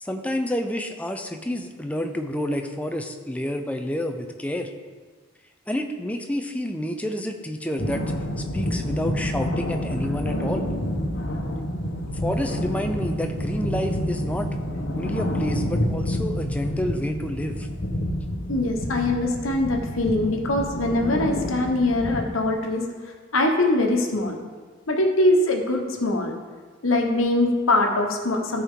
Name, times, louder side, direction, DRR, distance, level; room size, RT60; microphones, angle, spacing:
voice 1, 0.0-4.7 5.7-10.7 12.1-14.5 14.9-17.7, left 1 dB, 5° left, 4 dB, 0.5 m, -29 dB
sound 1, 7.8-22.2, equal, 65° left, 1.1 m, -28 dB
voice 2, 18.5-22.8 23.3-24.4 24.9-26.3 26.8-28.6, left 2 dB, 90° left, 2 dB, 1.1 m, -22 dB
13.5 x 4.5 x 3.7 m, 1.5 s
head